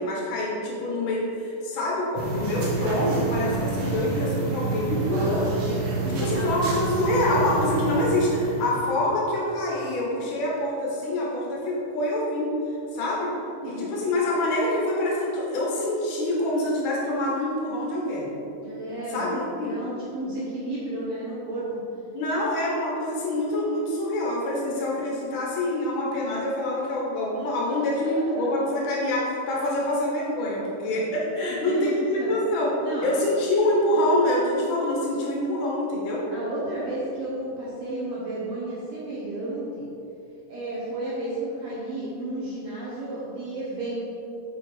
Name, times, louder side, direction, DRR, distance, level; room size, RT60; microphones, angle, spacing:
voice 1, 0.0-5.5 6.1-12.6 12.9-13.3 13.6-18.3 19.1-19.8 22.1-32.7 33.0-36.3, left 1 dB, 85° left, -4 dB, 1.1 m, -26 dB
sound 1, 2.2-8.8, right 3 dB, 60° right, 2.1 m, -28 dB
voice 2, 6.0-6.5 13.6-13.9 18.6-21.6 28.4-28.5 31.3-32.3 32.8-33.1 36.3-39.9 40.5-44.0, right 1 dB, 75° right, -7 dB, 1.3 m, -32 dB
7.6 x 4.6 x 4.8 m, 2.8 s
omnidirectional pair, 4.0 m